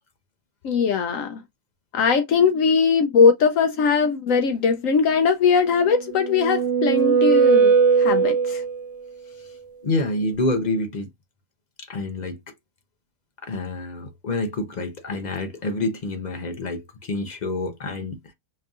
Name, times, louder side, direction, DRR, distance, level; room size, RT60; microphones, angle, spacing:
voice 1, 0.6-1.4 1.9-8.6, left 5 dB, 70° left, 0.9 m, -20 dB
sound 1, 5.9-8.9, right 5 dB, 70° right, 1.0 m, -19 dB
voice 2, 9.8-11.1 11.8-12.4 13.4-18.2, left 2 dB, 45° left, 0.6 m, -27 dB
5.3 x 2.5 x 2.3 m
omnidirectional pair, 1.6 m